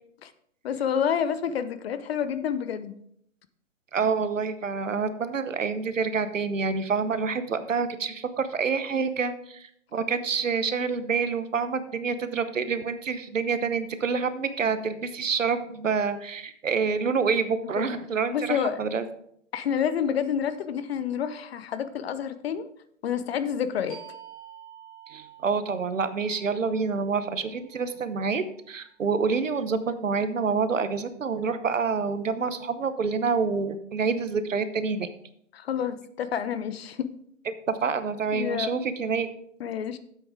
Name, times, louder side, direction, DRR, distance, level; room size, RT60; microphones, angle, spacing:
voice 1, 0.6-3.0 17.8-17.9 18.3-18.8 19.5-22.7 23.0-24.0 35.5-37.1 38.3-38.9 39.6-40.0, left 8 dB, 55° left, 12 dB, 0.8 m, -28 dB
voice 2, 3.9-19.0 25.1-35.1 37.5-39.3, right 5 dB, 85° right, 11 dB, 1.0 m, -27 dB
sound 1, 23.9-29.2, right 8 dB, 15° left, 2.0 m, -50 dB
9.3 x 7.9 x 3.5 m, 0.68 s
figure-of-eight pair, 125°, 37 cm